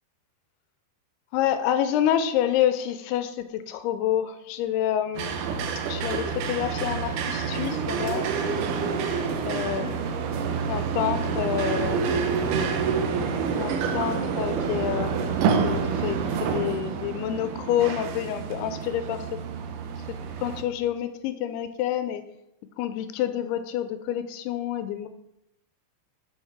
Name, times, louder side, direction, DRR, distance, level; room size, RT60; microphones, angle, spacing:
voice 1, 1.3-5.4 5.9-8.3 9.5-10.2 10.7-12.0 13.6-19.4 20.4-22.2 22.8-25.1, left 10 dB, 85° left, 10 dB, 2.5 m, -28 dB
sound 1, 5.1-20.6, right 6 dB, 80° right, 2.7 m, -28 dB
7.3 x 6.1 x 4.5 m, 0.83 s
omnidirectional pair, 4.6 m